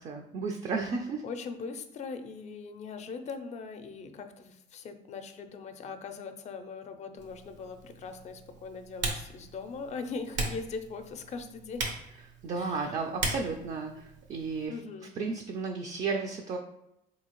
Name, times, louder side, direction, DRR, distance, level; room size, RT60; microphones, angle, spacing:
voice 1, 0.0-1.2 12.4-14.7 15.2-16.6, right 4 dB, 40° right, 4 dB, 0.4 m, -33 dB
voice 2, 1.2-11.9 12.6-12.9 14.7-15.1, left 4 dB, 40° left, 8 dB, 0.4 m, -40 dB
Typing, 7.2-14.7, right 3 dB, 85° right, 0.8 m, -39 dB
4.0 x 2.7 x 2.9 m, 0.82 s
cardioid pair, 105°, 18 cm